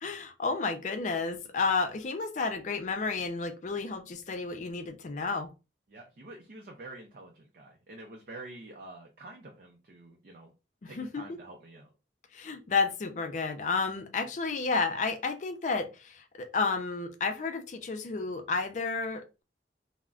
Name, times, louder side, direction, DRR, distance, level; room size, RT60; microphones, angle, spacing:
voice 1, 0.0-5.5 10.8-11.4 12.3-19.4, left 4 dB, 45° left, 0.4 m, -31 dB
voice 2, 5.9-10.5 10.9-11.9, right 2 dB, 55° right, 0.5 m, -47 dB
3.5 x 2.1 x 2.4 m
head